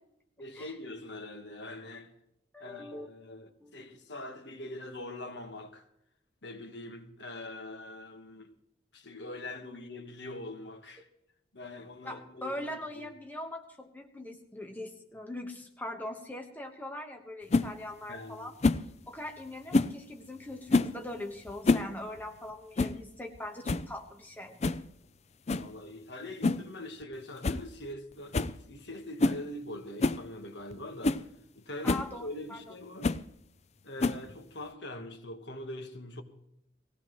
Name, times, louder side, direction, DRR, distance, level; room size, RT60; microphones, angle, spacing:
voice 1, 0.4-2.1 2.6-5.9 6.4-8.5 8.9-11.1 11.5-13.1 18.1-18.5 25.5-31.2 31.5-33.1 33.8-36.2, left 1 dB, 65° left, 1.4 m, -43 dB
voice 2, 2.5-3.1 3.6-3.8 12.0-18.5 19.1-24.6 31.8-32.7, left 1 dB, 10° left, 1.2 m, -41 dB
sound 1, 17.5-17.7 18.6-18.9 19.7-20.0 20.7-21.0 21.5-21.9 22.2-22.3 22.8-23.0 23.3-23.4 23.6-23.9 24.6-24.8 25.5-25.7 26.4-26.7 27.0-27.1 27.4-27.6 27.9-28.0 28.3-28.6 29.2-29.4 30.0-30.2 30.7-30.8 31.0-31.2 31.8-32.1 33.0-33.2 34.0-34.4, left 3 dB, 35° left, 0.5 m, -27 dB
19.5 x 16.0 x 3.1 m
head